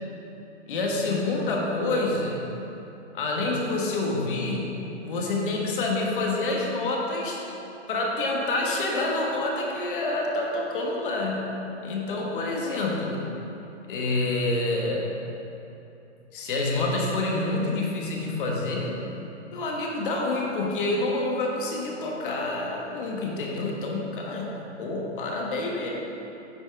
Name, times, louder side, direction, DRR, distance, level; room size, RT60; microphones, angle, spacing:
voice 1, 0.7-2.4 3.1-7.4 7.9-11.5 11.8-13.2 13.9-15.1 16.3-19.0 19.5-24.5 24.8-25.9, left 2 dB, 45° left, -1 dB, 1.5 m, -27 dB
9.5 x 5.3 x 4.7 m, 2.9 s
hypercardioid pair, 150°, 36 cm